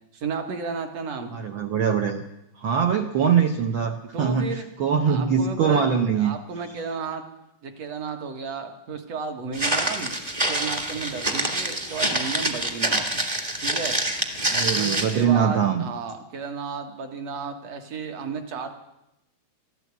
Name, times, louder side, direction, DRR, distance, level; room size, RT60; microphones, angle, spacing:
voice 1, 0.1-1.4 4.1-4.7 5.1-5.8 6.1-7.2 7.6-10.1 10.5-13.3 13.6-14.0 14.7-18.7, right 5 dB, 60° right, 5 dB, 2.5 m, -33 dB
voice 2, 1.3-2.2 2.6-6.4 14.5-15.8, right 7 dB, 80° right, 5 dB, 1.1 m, -22 dB
Walk footsteps, 9.5-15.2, right 1 dB, 25° right, 0.9 m, -26 dB
14.0 x 12.5 x 8.2 m, 0.88 s
omnidirectional pair, 3.4 m